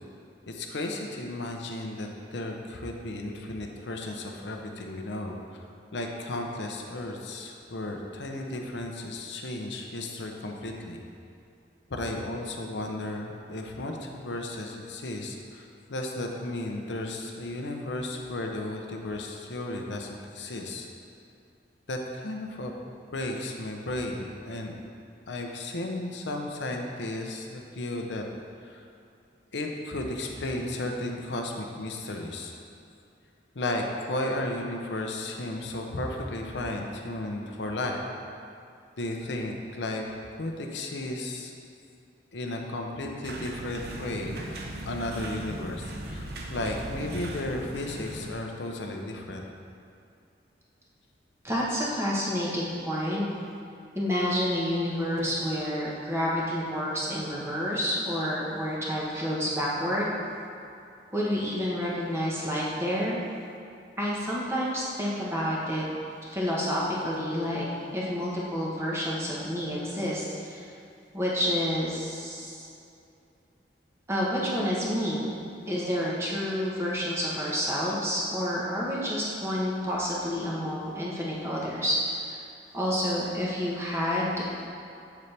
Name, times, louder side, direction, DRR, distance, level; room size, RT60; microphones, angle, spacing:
voice 1, 0.5-5.4 5.9-11.0 11.9-20.9 21.9-22.7 23.1-24.8 25.3-28.2 28.6-28.8 29.5-32.5 33.5-38.0 39.0-41.5 42.3-44.6 44.9-49.4, left 1 dB, 80° left, 2 dB, 0.7 m, -34 dB
sound 1, 43.2-48.3, right 1 dB, 55° right, 0.7 m, -38 dB
voice 2, 51.4-53.2 53.9-60.1 61.1-63.2 64.0-65.9 66.3-67.7 67.9-70.7 71.1-72.7 74.1-75.3 75.7-82.4 82.7-84.5, equal, 15° right, -6 dB, 1.1 m, -29 dB
7.1 x 6.8 x 3.3 m, 2.6 s
head